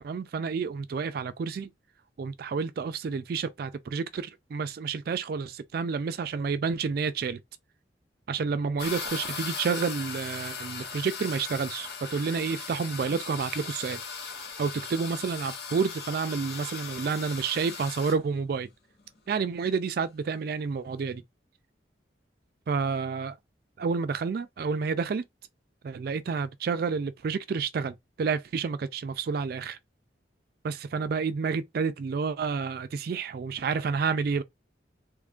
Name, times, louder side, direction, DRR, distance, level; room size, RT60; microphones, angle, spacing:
voice 1, 0.0-1.7 2.2-7.4 8.3-14.0 14.6-18.7 19.3-21.2 22.7-23.4 23.8-25.2 25.8-29.8 30.6-34.4, right 5 dB, 55° right, 0.3 m, -30 dB
sound 1, 8.8-18.2, left 5 dB, 60° left, 1.1 m, -38 dB
3.1 x 2.4 x 3.5 m
head